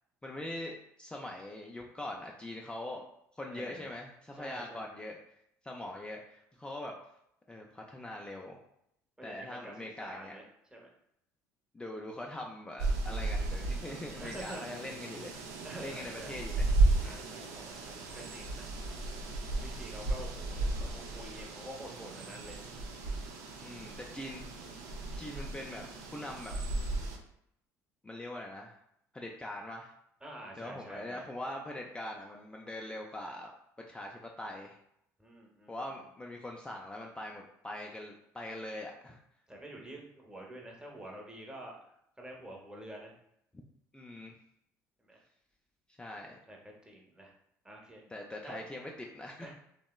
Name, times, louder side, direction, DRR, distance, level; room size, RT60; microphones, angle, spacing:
voice 1, 0.2-3.0 3.3-5.4 5.6-7.0 7.5-8.6 9.2-10.3 11.7-15.3 15.8-16.7 17.0-17.2 23.6-24.8 25.2-25.9 26.1-26.5 28.0-28.8 29.1-29.9 30.6-33.5 33.9-34.8 35.7-39.2 43.9-44.4 46.0-46.4 48.1-49.5, left 1 dB, 10° left, -1 dB, 0.3 m, -42 dB
voice 2, 3.5-3.9 4.3-4.9 9.2-9.7 10.0-10.5 10.7-10.9 14.2-14.7 15.6-16.4 17.0-18.7 19.6-22.6 30.2-31.2 35.2-35.9 39.5-43.1 45.0-45.2 46.5-47.3 47.6-48.0 48.4-48.6 49.4-49.5, right 1 dB, 10° right, -1 dB, 0.7 m, -47 dB
sound 1, 12.8-27.2, right 2 dB, 80° right, 0.4 m, -34 dB
2.8 x 2.0 x 2.2 m, 0.75 s
hypercardioid pair, 65°, 8 cm